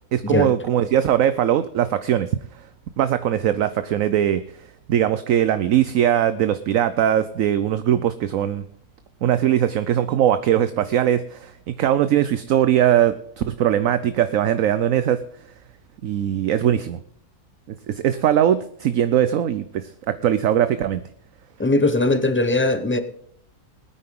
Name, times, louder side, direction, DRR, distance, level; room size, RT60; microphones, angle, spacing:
voice 1, 0.1-2.3 3.0-4.4 4.9-8.6 9.2-15.2 16.0-17.0 17.9-21.0, right 10 dB, 65° right, 1.0 m, -20 dB
voice 2, 21.6-23.0, left 2 dB, 15° left, 0.4 m, -20 dB
21.0 x 9.6 x 3.7 m
omnidirectional pair, 1.6 m